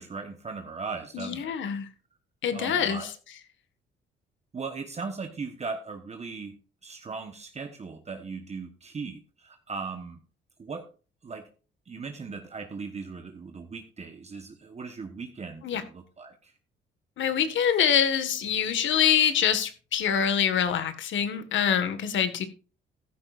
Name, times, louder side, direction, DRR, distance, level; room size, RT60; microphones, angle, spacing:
voice 1, 0.0-1.5 2.5-3.1 4.5-6.6 6.8-10.2 10.6-10.9 11.2-11.5 11.9-16.5, right 4 dB, 35° right, 6 dB, 1.2 m, -38 dB
voice 2, 1.1-1.9 2.4-3.1 15.6-15.8 17.2-22.5, left 8 dB, 70° left, 10 dB, 1.7 m, -25 dB
14.0 x 12.0 x 2.6 m, 0.36 s
cardioid pair, 90°, 20 cm